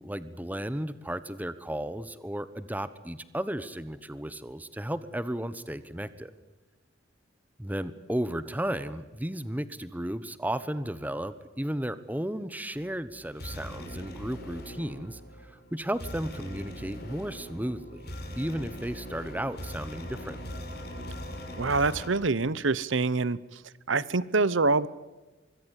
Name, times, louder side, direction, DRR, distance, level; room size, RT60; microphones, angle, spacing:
voice 1, 0.0-6.3 7.6-20.4, right 1 dB, 10° right, 14 dB, 1.1 m, -34 dB
sound 1, 12.7-22.1, equal, 55° left, 5.6 m, -41 dB
voice 2, 21.6-23.4 23.9-24.9, right 3 dB, 80° right, 18 dB, 0.9 m, -25 dB
25.0 x 23.5 x 8.3 m, 1.1 s
head